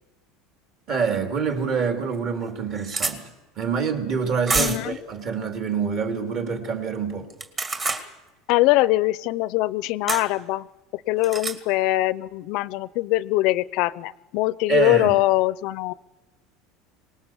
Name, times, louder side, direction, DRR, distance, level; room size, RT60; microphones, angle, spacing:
voice 1, 0.9-3.3 3.6-7.3 14.7-15.2, right 6 dB, 35° right, 3.0 m, -26 dB
sound 1, 1.5-1.6 2.1-2.2 2.4-3.2 4.5-4.9 7.3-8.1 10.1-10.3 11.2-11.6, right 3 dB, 20° right, 2.1 m, -27 dB
voice 2, 4.6-5.0 8.5-10.7 10.9-15.9, left 18 dB, 55° left, 0.7 m, -22 dB
25.5 x 19.0 x 7.3 m
cardioid pair, 165°, 0 cm